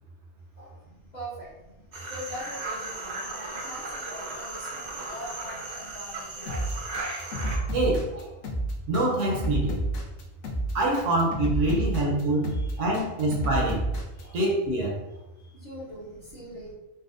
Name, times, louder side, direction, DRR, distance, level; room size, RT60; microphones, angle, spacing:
voice 1, 0.6-0.9 1.1-1.5 2.0-6.7 8.1-8.3 11.6-12.0 12.5-12.9 14.1-14.4 15.1-16.7, equal, 40° left, -7 dB, 0.8 m, -43 dB
sound 1, 1.9-7.6, right 2 dB, 50° right, 0.5 m, -36 dB
sound 2, 6.5-14.2, right 1 dB, 70° left, 1.0 m, -30 dB
voice 2, 7.7-8.1 8.9-9.8 10.7-13.9 14.3-15.0, right 1 dB, 70° right, 0 dB, 1.0 m, -25 dB
4.0 x 2.1 x 2.5 m, 0.97 s
omnidirectional pair, 1.3 m